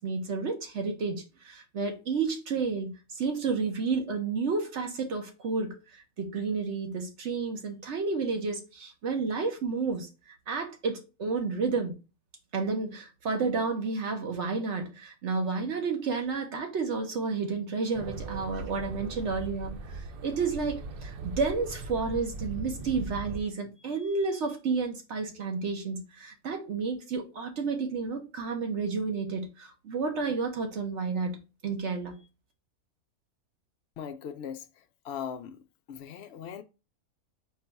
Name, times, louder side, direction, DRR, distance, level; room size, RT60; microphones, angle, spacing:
voice 1, 0.0-10.1 10.5-11.9 12.5-32.1, right 4 dB, 55° right, 1.0 m, -31 dB
sound 1, 17.9-23.4, right 3 dB, 80° right, 0.5 m, -39 dB
voice 2, 34.0-35.6 35.9-36.6, left 8 dB, 65° left, 0.6 m, -39 dB
4.5 x 2.3 x 4.0 m
omnidirectional pair, 1.5 m